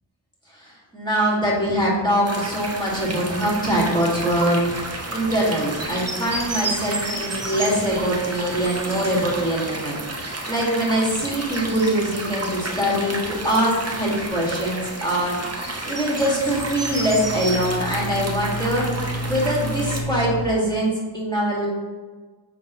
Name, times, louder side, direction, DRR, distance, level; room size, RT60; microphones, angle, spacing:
voice 1, 0.5-18.9 19.3-21.7, right 1 dB, 10° left, -5 dB, 2.0 m, -23 dB
sound 1, 2.2-20.0, right 2 dB, 30° right, 0.9 m, -31 dB
sound 2, 16.0-20.4, right 1 dB, 50° left, 0.6 m, -31 dB
7.1 x 5.5 x 3.1 m, 1.4 s
wide cardioid pair, 45°, 46 cm